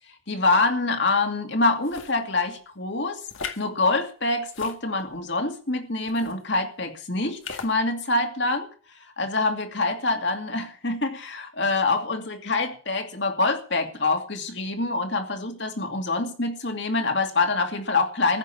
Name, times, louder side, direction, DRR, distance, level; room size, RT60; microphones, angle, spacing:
voice 1, 0.3-3.2 3.6-8.7 9.2-18.4, left 3 dB, 60° left, 4 dB, 2.5 m, -25 dB
sound 1, 1.8-2.2 3.3-3.6 4.5-5.2 6.1-6.4 7.4-7.7, left 5 dB, 80° left, 2.0 m, -37 dB
15.0 x 6.4 x 9.9 m, 0.40 s
head